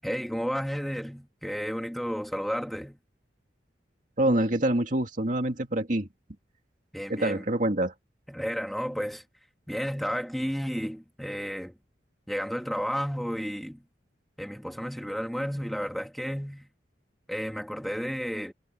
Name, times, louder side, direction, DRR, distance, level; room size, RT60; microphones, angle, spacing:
voice 1, 0.0-3.0 6.9-7.4 8.3-9.2 9.7-11.8 12.3-13.9 14.4-16.7 17.3-18.5, equal, ahead, 3.3 m, -32 dB
voice 2, 4.2-6.1 7.1-7.9, right 1 dB, 45° right, 2.3 m, -26 dB
head